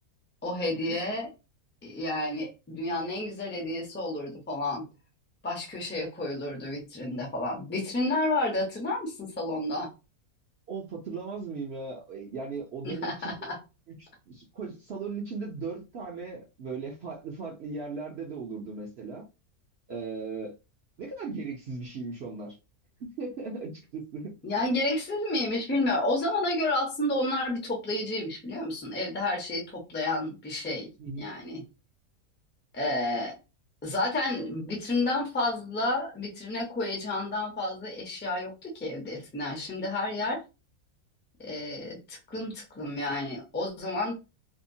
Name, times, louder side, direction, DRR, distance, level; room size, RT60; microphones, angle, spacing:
voice 1, 0.4-1.3 1.8-4.9 5.4-9.9 12.8-13.6 24.4-30.9 31.2-31.6 32.7-33.4 33.8-40.4 41.4-44.1, left 2 dB, 15° left, 0.4 m, -30 dB
voice 2, 10.7-13.3 14.3-19.3 19.9-20.5 21.0-22.6 23.0-24.3 31.0-31.3 33.1-33.2, right 4 dB, 60° right, 0.7 m, -37 dB
2.8 x 2.2 x 2.6 m
omnidirectional pair, 1.6 m